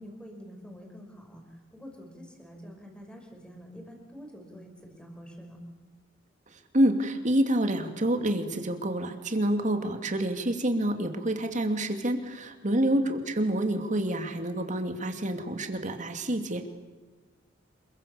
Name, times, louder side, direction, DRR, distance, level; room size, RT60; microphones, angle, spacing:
voice 1, 0.0-5.6 12.7-13.0, equal, 5° left, 2 dB, 5.8 m, -46 dB
voice 2, 6.7-16.7, right 1 dB, 40° right, 6 dB, 2.7 m, -27 dB
27.5 x 23.0 x 7.2 m, 1.2 s
head